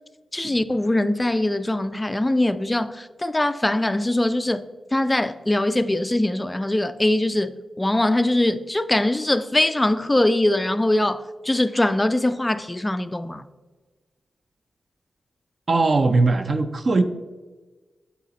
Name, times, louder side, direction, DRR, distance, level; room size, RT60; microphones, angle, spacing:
voice 1, 0.3-4.6 4.9-13.5, left 1 dB, 15° left, 0.3 m, -22 dB
voice 2, 15.7-17.0, right 3 dB, 45° right, 0.5 m, -20 dB
8.3 x 4.0 x 4.1 m
cardioid pair, 75°, 0 cm